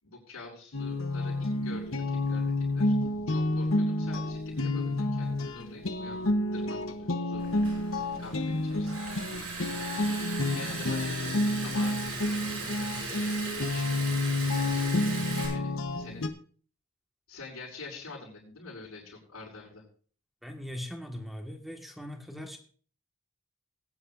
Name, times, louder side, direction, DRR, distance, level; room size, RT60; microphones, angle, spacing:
voice 1, 0.0-2.9 3.3-7.6 8.2-9.2 10.0-10.2 10.5-13.9 15.4-16.3 17.3-19.8, left 3 dB, 90° left, -7 dB, 5.4 m, -46 dB
sound 1, 0.7-16.3, left 2 dB, 65° left, 1.0 m, -30 dB
Liquid, 7.4-15.5, right 4 dB, 70° right, 6.2 m, -38 dB
voice 2, 20.4-22.6, equal, ahead, 2 dB, 1.6 m, -40 dB
20.0 x 9.8 x 2.5 m, 0.44 s
head